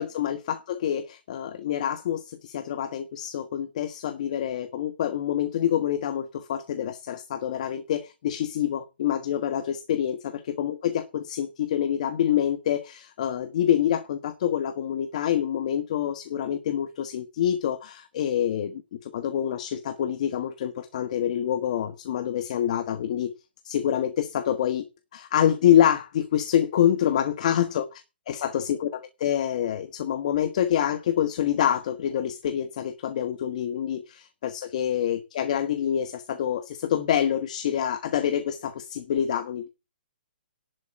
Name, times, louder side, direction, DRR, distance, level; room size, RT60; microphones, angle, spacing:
voice 1, 0.0-23.3 23.6-24.8 25.1-27.9 28.3-39.7, left 10 dB, 40° left, 1.4 m, -26 dB
11.0 x 8.2 x 7.7 m
hypercardioid pair, 165°, 6 cm